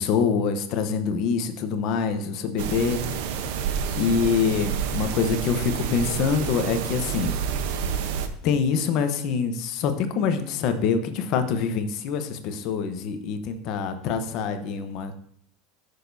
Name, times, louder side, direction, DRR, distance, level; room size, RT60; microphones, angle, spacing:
voice 1, 0.0-3.0 4.0-7.3 8.4-15.2, left 6 dB, 45° left, 8 dB, 0.9 m, -25 dB
sound 1, 2.6-8.3, right 7 dB, 65° right, 0.8 m, -29 dB
14.0 x 6.6 x 2.7 m, 0.64 s
supercardioid pair, 170°, 0 cm